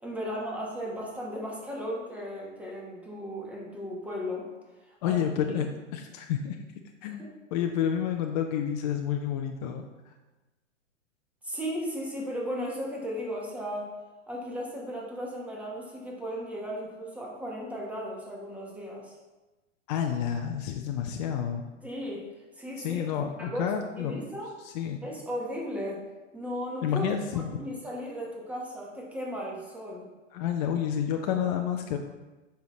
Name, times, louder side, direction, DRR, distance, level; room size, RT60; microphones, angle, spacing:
voice 1, 0.0-4.5 4.9-5.2 7.1-7.4 11.4-13.9 14.3-19.1 21.8-22.3 22.6-23.0 23.4-23.7 24.0-24.5 25.0-26.0 26.3-27.1 27.3-30.1, equal, 5° right, -3 dB, 1.3 m, -36 dB
voice 2, 5.0-5.7 5.9-6.6 7.0-7.2 7.5-10.1 19.9-21.7 22.8-24.2 24.6-25.0 26.8-27.6 30.3-32.0, left 9 dB, 35° left, 4 dB, 0.4 m, -29 dB
6.7 x 5.6 x 3.1 m, 1.1 s
hypercardioid pair, 115°, 39 cm